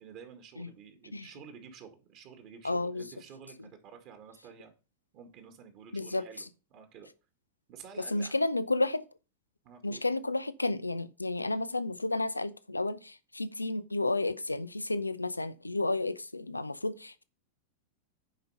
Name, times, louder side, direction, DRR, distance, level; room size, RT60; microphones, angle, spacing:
voice 1, 0.0-4.7 5.1-7.1 7.7-8.4 9.6-10.0, right 6 dB, 40° right, 2.1 m, -51 dB
voice 2, 2.6-3.0 3.6-3.7 5.9-6.3 8.1-9.0 9.8-17.2, left 2 dB, 80° left, 0.6 m, -32 dB
10.5 x 5.3 x 5.6 m
figure-of-eight pair, 90°, 0 cm